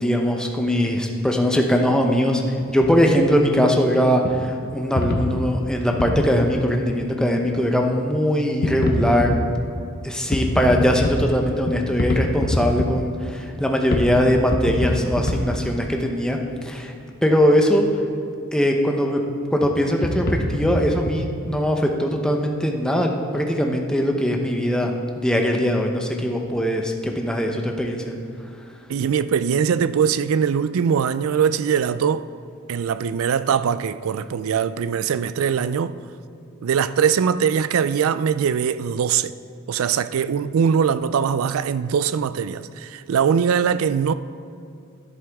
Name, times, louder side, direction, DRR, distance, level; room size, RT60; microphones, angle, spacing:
voice 1, 0.0-2.4 2.7-9.3 10.0-16.4 16.6-16.9 17.2-17.9 18.5-19.2 19.5-24.9 25.2-28.1, equal, 5° left, 0.8 m, -21 dB
sound 1, 2.6-3.0 3.5-3.6 4.2-4.4 5.0-6.3 7.4-7.5 8.0-8.1 8.6-9.4 10.2-11.2 11.7-12.9 13.5-13.6 13.9-14.1 14.3-15.4 15.8-15.9 17.7-17.9 19.6-19.7 20.0-21.1, left 1 dB, 45° left, 1.0 m, -24 dB
voice 2, 28.9-32.3 32.7-36.0 36.6-39.3 39.7-44.1, right 7 dB, 70° right, 0.3 m, -21 dB
12.0 x 10.5 x 3.5 m
head